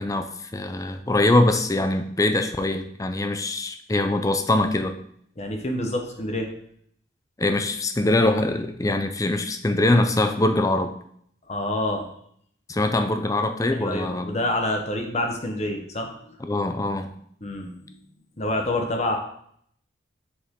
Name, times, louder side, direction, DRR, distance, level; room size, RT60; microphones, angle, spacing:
voice 1, 0.0-5.0 7.4-10.9 12.7-14.3 16.4-17.1, left 2 dB, 20° left, 7 dB, 0.5 m, -23 dB
voice 2, 5.4-6.5 11.5-12.1 13.8-16.1 17.4-18.0 18.4-19.2, left 1 dB, 35° left, 3 dB, 1.0 m, -27 dB
6.6 x 5.9 x 3.7 m, 0.66 s
head